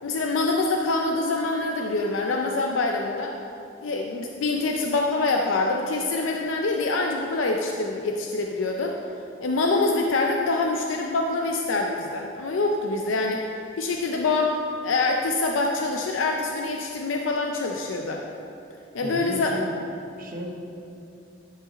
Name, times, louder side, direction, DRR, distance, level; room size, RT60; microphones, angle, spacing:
voice 1, 0.0-3.3 3.8-9.0 9.4-13.4 13.8-18.2 18.9-19.5, left 3 dB, 85° left, 1 dB, 0.5 m, -25 dB
voice 2, 19.0-19.7 20.2-20.5, right 1 dB, 50° right, 0 dB, 1.0 m, -33 dB
11.0 x 4.8 x 4.1 m, 2.7 s
head